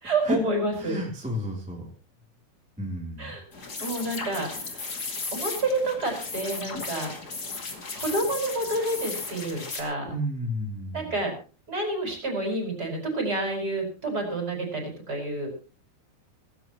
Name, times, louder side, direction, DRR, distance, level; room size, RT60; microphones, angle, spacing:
voice 1, 0.0-1.0 3.2-4.8 5.3-7.1 7.9-10.1 10.9-11.3 11.7-15.5, right 2 dB, 20° right, 2 dB, 5.2 m, -29 dB
voice 2, 0.8-1.9 2.8-3.4 10.1-11.1, equal, ahead, -2 dB, 2.1 m, -31 dB
sound 1, 3.5-9.8, left 4 dB, 35° left, 1.7 m, -35 dB
18.0 x 17.0 x 3.1 m, 0.37 s
omnidirectional pair, 5.6 m